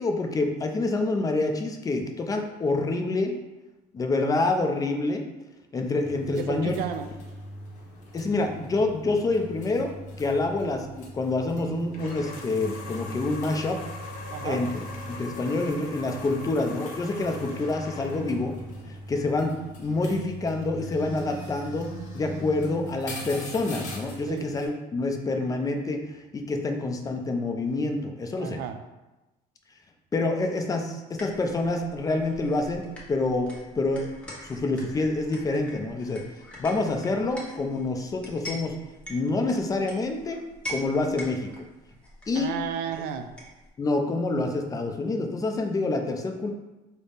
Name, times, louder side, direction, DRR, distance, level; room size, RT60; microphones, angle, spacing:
voice 1, 0.0-3.3 3.9-5.3 5.7-6.7 8.1-9.9 10.2-13.8 14.4-14.7 15.1-18.6 19.1-28.6 30.1-34.1 34.4-36.2 36.6-38.7 39.1-40.4 40.7-41.7 42.3-42.5 43.8-46.5, left 2 dB, 20° left, 4 dB, 0.4 m, -27 dB
sound 1, 6.0-24.7, equal, 50° left, 0.9 m, -41 dB
voice 2, 6.3-7.1 14.3-14.6 24.3-24.5 28.4-28.8 42.3-43.4, right 8 dB, 75° right, 8 dB, 0.4 m, -33 dB
sound 2, 11.9-18.5, left 3 dB, 80° left, 0.8 m, -41 dB
sound 3, 31.1-43.7, equal, 5° left, 0.9 m, -44 dB
4.0 x 2.1 x 3.3 m, 1.0 s
cardioid pair, 105°, 16 cm